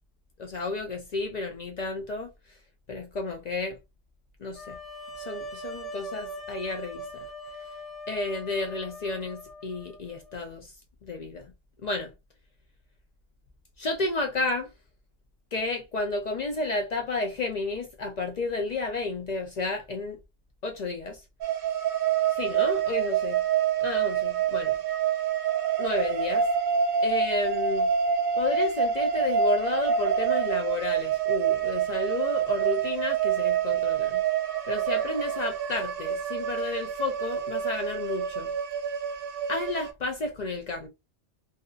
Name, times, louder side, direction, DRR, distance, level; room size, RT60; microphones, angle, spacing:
voice 1, 0.4-2.3 2.9-3.8 4.4-4.8 5.2-7.3 8.1-10.7 11.0-11.5 11.8-12.1 13.8-14.7 15.5-20.2 20.6-21.2 22.4-23.4 23.8-24.7 25.8-26.5 27.0-27.9 28.4-34.2 34.7-38.5 39.5-40.9, left 3 dB, 65° left, 0.4 m, -31 dB
sound 1, 4.5-10.4, equal, ahead, 0.9 m, -41 dB
sound 2, 21.4-39.9, right 7 dB, 60° right, 0.7 m, -27 dB
2.7 x 2.7 x 2.3 m
omnidirectional pair, 1.3 m